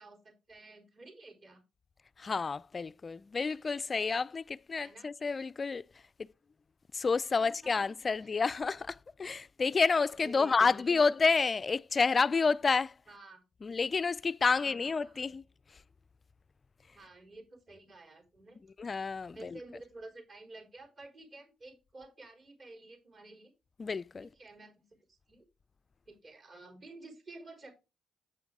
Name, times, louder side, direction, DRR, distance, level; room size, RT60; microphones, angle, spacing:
voice 1, 0.0-1.6 4.8-5.1 7.4-7.7 8.1-8.8 10.2-11.1 13.1-13.4 14.5-15.2 16.9-18.6 19.3-23.5 24.3-25.5 26.1-27.7, right 2 dB, 45° right, 3.9 m, -52 dB
voice 2, 2.2-5.8 6.2-6.3 6.9-12.9 13.6-15.4 18.8-19.6 23.8-24.3, left 4 dB, 35° left, 0.3 m, -29 dB
8.1 x 7.1 x 3.6 m
cardioid pair, 90°, 0 cm